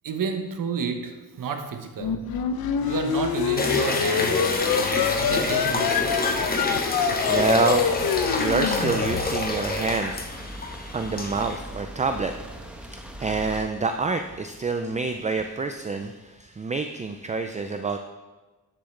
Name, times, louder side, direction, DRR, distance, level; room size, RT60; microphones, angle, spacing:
voice 1, 0.0-2.2 2.8-4.4 5.2-6.0, right 5 dB, 60° right, 6 dB, 1.1 m, -30 dB
sound 1, 2.0-9.6, left 7 dB, 70° left, 0.7 m, -26 dB
sound 2, 3.6-11.6, left 2 dB, 25° left, 1.1 m, -28 dB
sound 3, 4.5-13.6, equal, 5° right, 1.0 m, -40 dB
voice 2, 6.7-18.0, right 4 dB, 20° right, 7 dB, 0.4 m, -28 dB
11.0 x 7.5 x 3.3 m, 1.2 s
cardioid pair, 90°, 37 cm